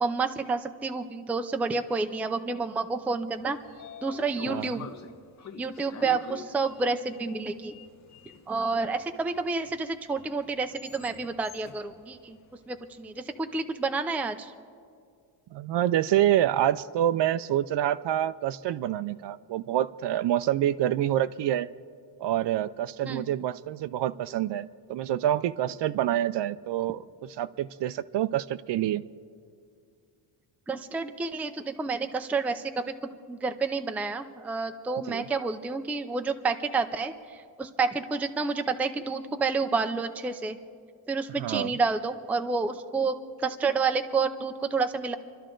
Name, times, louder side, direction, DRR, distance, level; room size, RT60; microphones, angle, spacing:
voice 1, 0.0-3.6 4.0-4.8 5.6-7.7 8.5-12.4 12.7-14.5 23.1-23.3 30.7-32.6 33.3-40.6 41.1-45.1, right 4 dB, 5° right, 7 dB, 0.4 m, -29 dB
Sliding door, 3.2-13.4, left 6 dB, 35° left, 0.7 m, -47 dB
voice 2, 15.5-21.7 22.2-29.0 35.1-35.3 41.4-41.8, right 12 dB, 60° right, 15 dB, 0.5 m, -27 dB
29.0 x 12.0 x 3.8 m, 2.2 s
cardioid pair, 150°, 50 cm